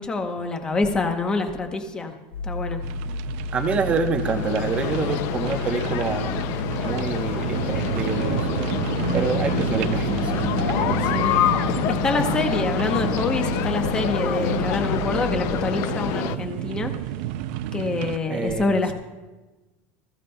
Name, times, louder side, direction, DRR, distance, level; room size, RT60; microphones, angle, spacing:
voice 1, 0.0-2.1 2.4-2.8 11.1-16.9 17.7-18.9, left 3 dB, 15° left, 6 dB, 0.8 m, -26 dB
sound 1, 2.3-15.0, left 3 dB, 90° left, 3.8 m, -31 dB
sound 2, 2.8-18.2, right 13 dB, 60° right, 0.4 m, -31 dB
voice 2, 3.5-6.4 6.8-8.6 9.1-11.2 18.3-18.9, right 4 dB, 20° right, 5 dB, 0.9 m, -27 dB
sound 3, 4.2-16.4, left 11 dB, 45° left, 0.4 m, -28 dB
21.0 x 14.5 x 2.3 m, 1.2 s
cardioid pair, 180°, 6 cm